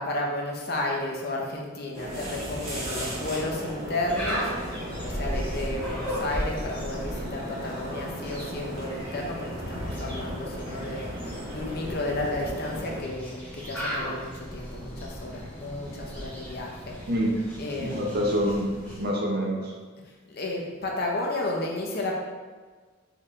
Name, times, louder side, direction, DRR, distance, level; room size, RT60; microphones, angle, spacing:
voice 1, 0.0-4.5 5.0-11.1 11.5-17.0 17.6-18.5 20.3-22.1, left 2 dB, 50° left, 0 dB, 0.6 m, -32 dB
sound 1, 1.9-13.0, equal, 30° right, 1.2 m, -36 dB
sound 2, 4.1-19.1, equal, 10° left, 0.9 m, -37 dB
voice 2, 17.8-19.7, equal, 50° right, -1 dB, 0.6 m, -26 dB
4.2 x 3.2 x 2.5 m, 1.4 s
head